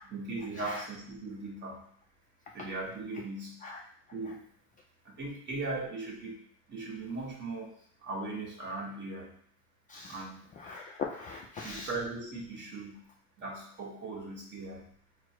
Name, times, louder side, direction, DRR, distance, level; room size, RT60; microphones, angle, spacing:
voice 1, 0.0-1.8 2.5-3.6 4.1-4.5 5.0-7.7 8.0-9.3 10.1-10.4 11.6-13.0 13.4-14.9, right 3 dB, 30° right, -2 dB, 1.3 m, -39 dB
voice 2, 10.6-11.9, left 5 dB, 25° left, -1 dB, 0.3 m, -40 dB
4.3 x 2.1 x 4.4 m, 0.62 s
supercardioid pair, 125°, 35 cm